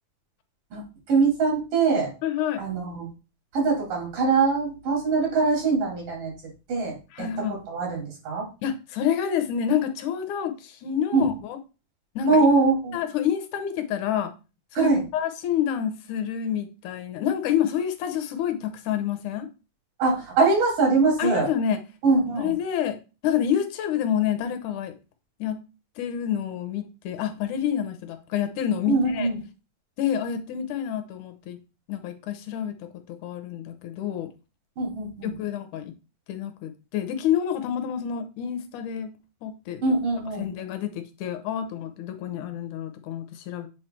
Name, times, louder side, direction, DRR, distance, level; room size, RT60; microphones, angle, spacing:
voice 1, 1.1-2.1 2.6-3.1 3.5-6.3 6.7-7.3 7.7-8.5 11.1-11.4 12.3-13.0 14.8-15.0 20.0-21.5 22.0-22.5 28.9-29.4 34.8-35.3 39.8-40.5, right 4 dB, 70° right, -1 dB, 4.4 m, -22 dB
voice 2, 2.2-2.6 7.1-7.6 8.6-11.6 12.2-12.4 12.9-14.3 14.7-19.5 21.2-21.8 22.4-24.9 25.4-25.6 26.0-29.3 30.0-31.6 31.9-34.3 35.2-35.9 36.3-39.1 39.4-39.8 40.4-43.7, left 9 dB, 75° left, 9 dB, 2.1 m, -28 dB
8.1 x 3.2 x 4.3 m, 0.30 s
omnidirectional pair, 4.0 m